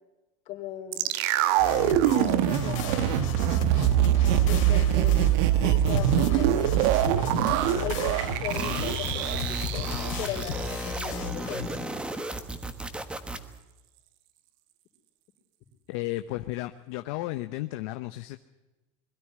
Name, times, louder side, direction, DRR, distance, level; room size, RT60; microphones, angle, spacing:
voice 1, 0.5-1.2 2.0-2.8 4.5-7.0 7.8-12.0, left 10 dB, 45° left, 4 dB, 3.6 m, -38 dB
sound 1, 0.9-11.1 11.3-11.4, right 12 dB, 60° right, 1.1 m, -24 dB
sound 2, 1.6-11.7, left 8 dB, 80° left, 2.9 m, -35 dB
sound 3, 8.5-13.6, right 2 dB, 5° right, 1.2 m, -35 dB
voice 2, 15.9-18.4, left 17 dB, 65° left, 9 dB, 0.8 m, -34 dB
21.5 x 13.0 x 9.9 m, 1.1 s
supercardioid pair, 155°, 16 cm